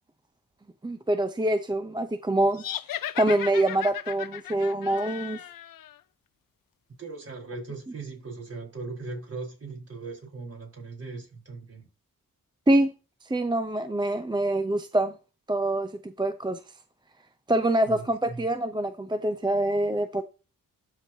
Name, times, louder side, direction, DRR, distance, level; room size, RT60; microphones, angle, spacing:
voice 1, 0.8-2.6 3.2-5.4 12.7-12.9 13.3-15.1 15.5-16.6 17.5-20.2, right 1 dB, 15° right, 0.6 m, -25 dB
sound 1, 2.5-6.0, left 11 dB, 75° left, 0.6 m, -36 dB
voice 2, 7.0-11.9 17.9-18.4, right 3 dB, 45° right, 4.1 m, -39 dB
13.0 x 4.7 x 2.8 m
cardioid pair, 65°, 34 cm